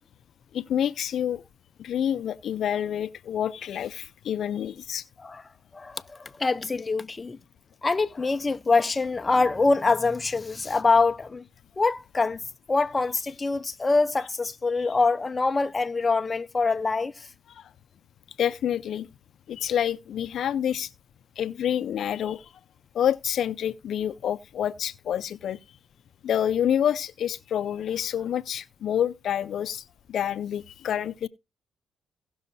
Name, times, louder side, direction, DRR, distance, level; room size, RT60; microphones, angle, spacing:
voice 1, 0.5-1.4 1.8-5.0 17.5-17.7 18.4-19.1 19.5-20.9 21.4-22.5 22.9-25.6 26.2-31.3, left 9 dB, 65° left, 0.6 m, -28 dB
voice 2, 5.7-7.4 7.8-11.4 11.8-12.4 12.7-17.1, left 3 dB, 25° left, 0.6 m, -24 dB
18.0 x 6.3 x 2.7 m
cardioid pair, 90°, 0 cm